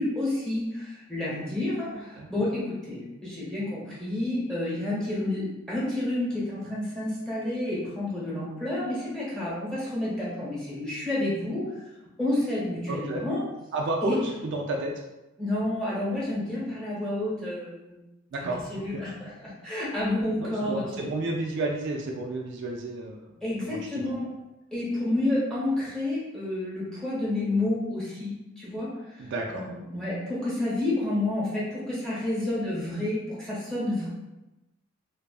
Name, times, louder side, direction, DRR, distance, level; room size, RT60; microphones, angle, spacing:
voice 1, 0.0-11.8 12.2-13.4 14.0-14.2 15.4-18.0 18.4-21.1 23.4-24.3 24.7-29.2 29.5-34.1, left 1 dB, 5° left, -9 dB, 1.0 m, -30 dB
voice 2, 12.9-13.2 13.7-14.2 14.4-14.9 18.3-19.0 20.4-23.3 23.6-23.8 29.2-29.6, right 2 dB, 60° right, 1 dB, 0.3 m, -31 dB
2.6 x 2.3 x 2.3 m, 0.99 s
head